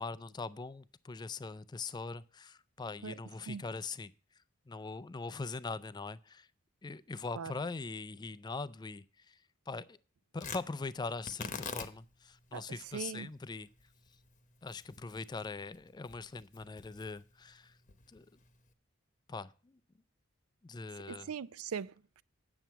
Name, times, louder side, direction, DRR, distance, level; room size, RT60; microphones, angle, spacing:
voice 1, 0.0-4.1 4.7-6.5 6.8-10.0 10.3-13.7 14.6-17.8 18.1-18.3 19.3-19.8 20.6-21.3, left 3 dB, 20° left, 0.3 m, -42 dB
Tearing, 10.4-18.7, left 5 dB, 35° left, 0.9 m, -48 dB
voice 2, 12.9-13.3 21.1-22.2, right 6 dB, 85° right, 0.4 m, -40 dB
9.2 x 7.0 x 4.4 m
head